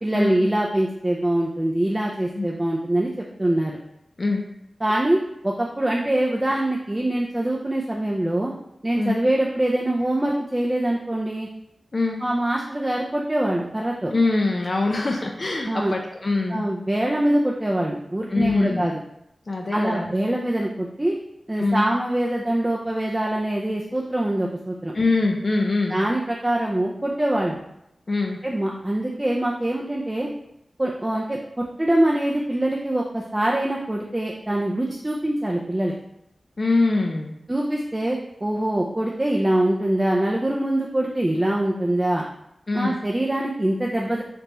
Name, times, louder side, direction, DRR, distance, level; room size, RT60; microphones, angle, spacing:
voice 1, 0.0-3.8 4.8-8.5 8.8-11.5 12.2-14.1 15.7-15.9 16.5-18.9 19.7-21.2 21.5-24.9 25.9-27.6 28.4-30.3 30.8-35.9 37.5-42.2 42.7-44.2, right 1 dB, 20° right, -2 dB, 0.4 m, -24 dB
voice 2, 14.1-16.6 18.3-18.8 19.5-20.1 21.6-21.8 24.9-26.0 28.1-28.4 36.6-37.4 42.7-43.0, left 3 dB, 50° left, 1 dB, 0.4 m, -23 dB
3.4 x 3.0 x 2.9 m, 0.81 s
wide cardioid pair, 80°, 0 cm